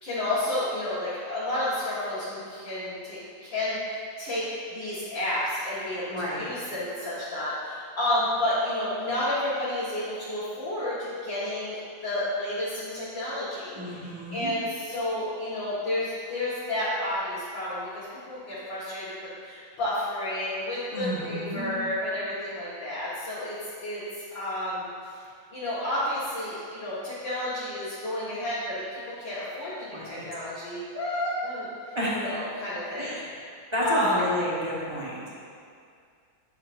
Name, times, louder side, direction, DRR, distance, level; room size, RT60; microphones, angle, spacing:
voice 1, 0.0-19.2 19.4-24.0 24.3-24.8 25.5-31.7 32.1-33.2 33.8-34.2, left 1 dB, 85° left, -12 dB, 2.3 m, -31 dB
voice 2, 6.1-6.6 13.7-14.5 20.9-21.7 29.9-30.2 31.9-32.2 33.0-33.3 33.7-35.2, equal, 20° right, -7 dB, 1.0 m, -30 dB
8.8 x 6.9 x 2.6 m, 2.3 s
omnidirectional pair, 2.0 m